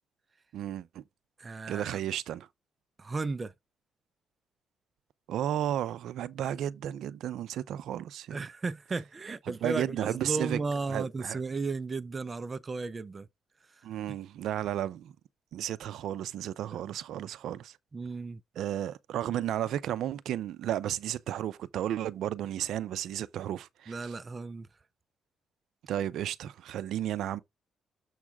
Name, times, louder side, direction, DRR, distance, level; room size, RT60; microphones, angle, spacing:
voice 1, 0.5-1.0 1.7-2.5 5.3-8.4 9.6-10.6 10.9-11.4 13.8-15.1 15.5-17.7 18.6-23.9 25.9-27.4, right 11 dB, 75° right, 0.5 m, -33 dB
voice 2, 1.4-2.0 3.0-3.5 8.3-13.3 13.7-13.9 16.7-16.8 17.9-18.4 23.9-24.7, right 3 dB, 30° right, 0.5 m, -35 dB
7.3 x 6.0 x 3.5 m
cardioid pair, 90°, 0 cm